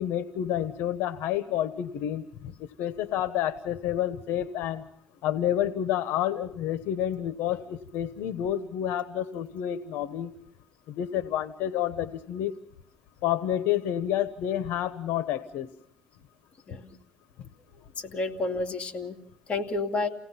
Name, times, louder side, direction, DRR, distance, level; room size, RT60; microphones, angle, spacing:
voice 1, 0.0-2.5 2.8-4.9 5.2-10.3 10.9-12.5 13.2-15.7, left 11 dB, 80° left, 12 dB, 1.1 m, -29 dB
voice 2, 18.0-19.2 19.5-20.1, left 3 dB, 35° left, 3 dB, 2.7 m, -30 dB
29.0 x 18.0 x 5.8 m, 0.73 s
cardioid pair, 115°, 4 cm